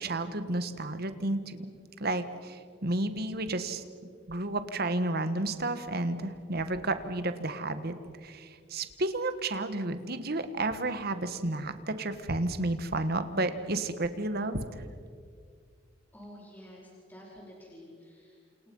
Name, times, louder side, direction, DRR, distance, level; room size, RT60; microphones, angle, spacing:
voice 1, 0.0-1.6 2.0-3.8 4.3-7.9 8.2-14.6, right 2 dB, 55° right, 10 dB, 1.6 m, -31 dB
voice 2, 16.1-18.7, equal, 10° left, -4 dB, 4.7 m, -50 dB
29.0 x 28.0 x 5.6 m, 2.1 s
head